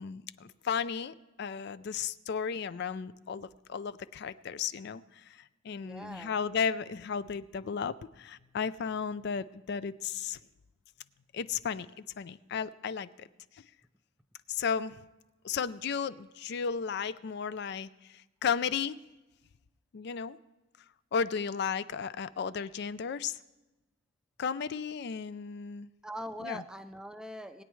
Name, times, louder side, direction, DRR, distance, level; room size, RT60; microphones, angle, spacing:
voice 1, 0.0-5.0 5.6-10.4 11.3-11.9 12.2-13.3 14.5-15.0 15.4-17.9 18.4-19.0 19.9-20.4 21.1-23.4 24.4-25.9 26.4-26.6, left 6 dB, 55° left, 16 dB, 0.4 m, -34 dB
voice 2, 5.7-6.4 26.0-27.6, equal, 5° right, 9 dB, 0.5 m, -42 dB
20.5 x 9.3 x 3.1 m, 1.1 s
head